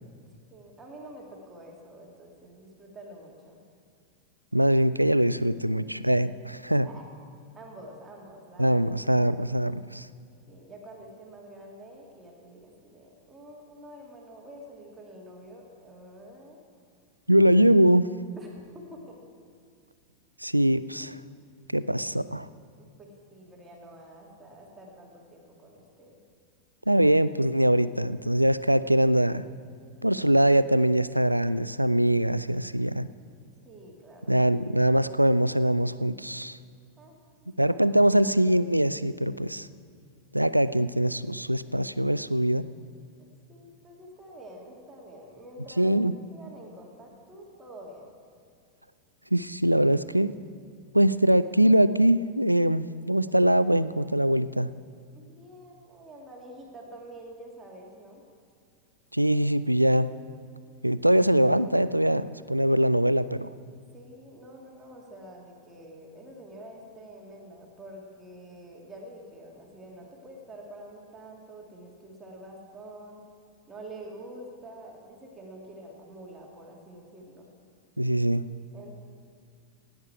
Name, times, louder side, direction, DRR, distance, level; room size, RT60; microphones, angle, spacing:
voice 1, 0.5-3.6 6.8-7.1 7.5-8.8 10.5-16.6 18.4-18.5 18.9-19.2 21.0-21.1 22.8-26.2 33.6-34.4 37.0-37.2 37.6-37.8 43.5-46.0 46.3-48.1 55.2-58.2 59.3-59.4 63.9-73.2 73.7-77.4 78.7-78.9, right 1 dB, 15° right, -1 dB, 2.3 m, -47 dB
voice 2, 4.5-6.9 8.6-10.1 17.3-18.1 20.4-21.2 21.7-22.5 26.9-29.5 30.0-33.1 34.3-36.6 37.6-39.7 40.3-42.7 45.8-46.1 49.3-50.3 50.9-54.7 59.1-60.1 60.8-63.5 78.0-78.4, right 1 dB, 90° right, 16 dB, 0.3 m, -22 dB
16.5 x 9.6 x 4.7 m, 2.3 s
figure-of-eight pair, 90°, 0 cm